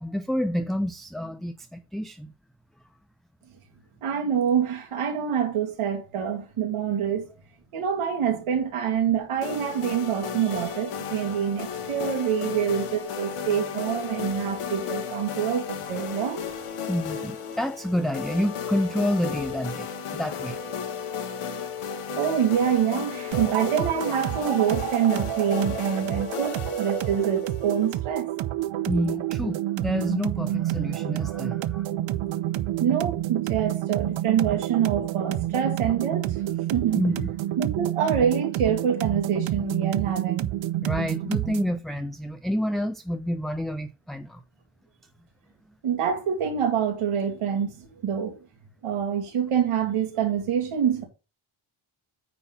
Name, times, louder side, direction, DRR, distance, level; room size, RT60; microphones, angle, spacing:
voice 1, 0.0-2.3 16.9-20.6 28.9-31.9 36.9-37.3 40.8-44.4, equal, ahead, 0.3 m, -28 dB
voice 2, 4.0-7.3 7.7-16.5 22.2-28.3 32.8-36.4 36.7-37.0 37.6-40.5 45.8-48.4 48.8-51.0, right 8 dB, 90° right, 2.6 m, -26 dB
sound 1, 9.4-28.0, left 7 dB, 90° left, 1.4 m, -34 dB
sound 2, 23.3-41.8, right 13 dB, 65° right, 0.6 m, -29 dB
9.4 x 4.1 x 5.5 m
cardioid pair, 130°, 50 cm